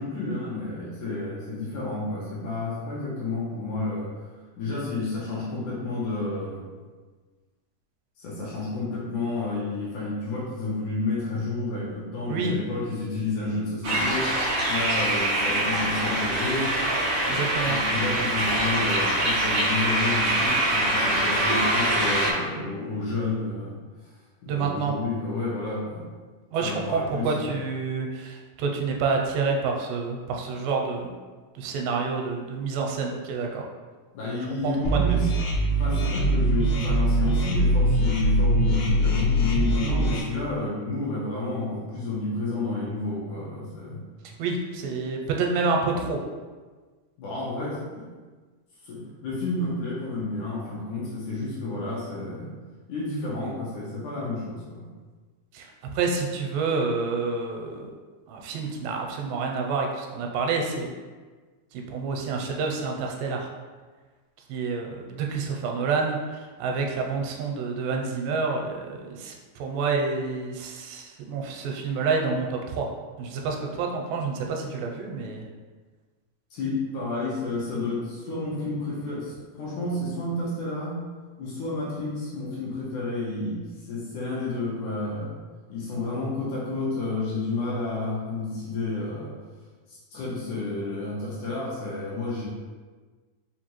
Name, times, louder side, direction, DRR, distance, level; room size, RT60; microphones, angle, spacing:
voice 1, 0.0-4.1 4.6-6.6 8.2-14.3 14.7-16.7 17.2-23.8 24.4-26.1 26.6-27.5 34.1-35.3 35.8-44.0 47.2-48.1 48.8-52.5 52.9-54.9 76.5-81.0 81.4-85.3 85.7-89.3 89.9-92.5, left 2 dB, 70° left, -6 dB, 2.0 m, -30 dB
sound 1, 13.8-22.3, right 1 dB, 70° right, 1.1 m, -24 dB
voice 2, 17.3-17.8 24.5-24.9 26.5-31.1 31.6-33.6 34.6-35.2 44.2-46.2 55.5-57.9 58.3-60.9 61.7-63.5 64.5-72.9 73.2-75.4, right 4 dB, 85° right, 1 dB, 2.3 m, -28 dB
sound 2, 34.8-40.2, right 1 dB, 85° left, 2.4 m, -22 dB
5.4 x 2.5 x 2.9 m, 1.4 s
omnidirectional pair, 3.9 m